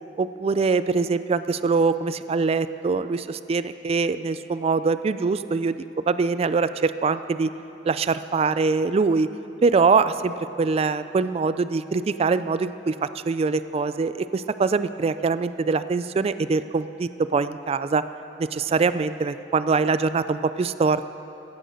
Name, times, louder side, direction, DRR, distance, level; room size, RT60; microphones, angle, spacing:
voice 1, 0.2-5.7 6.1-7.5 7.8-9.3 9.6-18.0 18.4-21.1, right 4 dB, 35° right, 13 dB, 0.3 m, -23 dB
16.0 x 10.5 x 6.4 m, 2.9 s
head